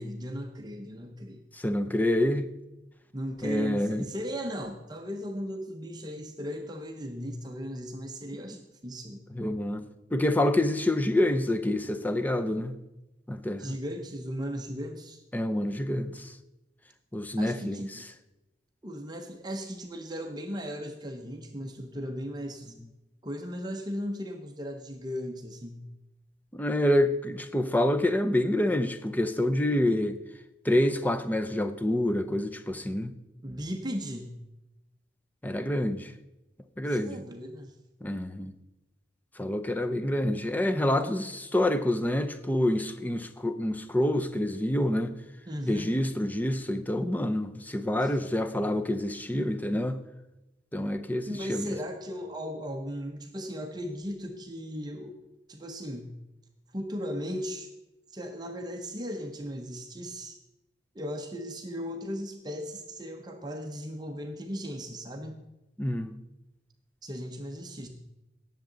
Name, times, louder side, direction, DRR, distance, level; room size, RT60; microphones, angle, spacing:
voice 1, 0.0-1.4 3.1-9.2 13.6-15.2 17.4-18.0 18.8-22.7 23.2-25.8 33.4-34.3 36.9-37.8 41.0-41.2 45.5-45.9 48.0-48.2 49.3-49.5 51.3-55.2 55.5-56.1 56.7-57.7 58.1-60.4 60.9-65.5 67.0-67.9, equal, 20° right, 0.8 m, -37 dB
voice 2, 1.6-2.5 3.4-4.0 9.4-9.8 10.1-12.7 13.3-13.7 15.3-16.3 17.1-17.8 26.5-30.2 30.6-33.1 35.4-36.1 36.8-37.2 38.0-38.5 39.4-45.1 45.7-50.0 50.7-51.8 65.8-66.1, left 1 dB, 10° left, 0.6 m, -27 dB
18.0 x 7.3 x 3.9 m
head